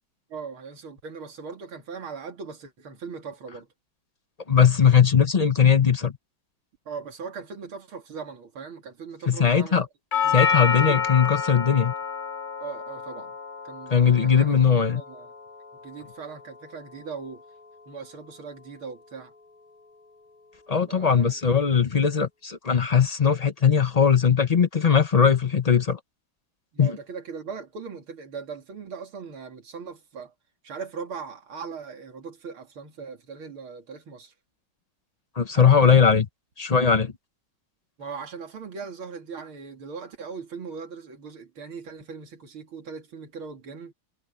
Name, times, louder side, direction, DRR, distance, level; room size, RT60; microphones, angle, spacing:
voice 1, 0.3-3.7 6.8-9.8 10.2-11.2 12.6-13.4 13.6-15.3 15.8-17.4 17.9-19.3 20.9-21.3 26.7-30.3 30.6-34.3 35.5-36.1 38.0-43.9, right 5 dB, 80° right, 3.3 m, -39 dB
voice 2, 4.5-6.1 9.3-9.9 10.3-11.9 13.9-15.0 20.7-26.0 26.8-27.0 35.4-36.2 36.6-37.1, left 7 dB, 75° left, 0.3 m, -19 dB
Doorbell, 10.1-18.2, left 6 dB, 30° left, 1.0 m, -30 dB
omnidirectional pair, 2.2 m